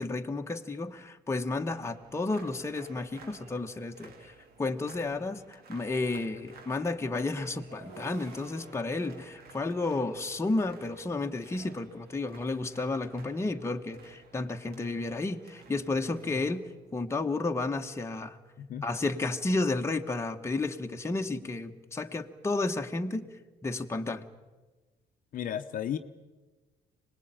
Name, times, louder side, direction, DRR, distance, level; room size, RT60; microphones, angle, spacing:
voice 1, 0.0-4.3 4.6-16.7 16.9-18.4 18.8-23.3 23.6-24.2, left 3 dB, 15° left, 4 dB, 1.3 m, -32 dB
sound 1, 1.7-16.5, right 4 dB, 65° right, 2.5 m, -55 dB
sound 2, 4.3-5.6 7.5-10.7 12.0-12.8 14.2-17.6, right 4 dB, 85° right, 4.3 m, -55 dB
voice 2, 25.3-26.0, left 9 dB, 55° left, 7 dB, 0.9 m, -34 dB
25.0 x 19.5 x 9.1 m, 1.3 s
cardioid pair, 110°, 17 cm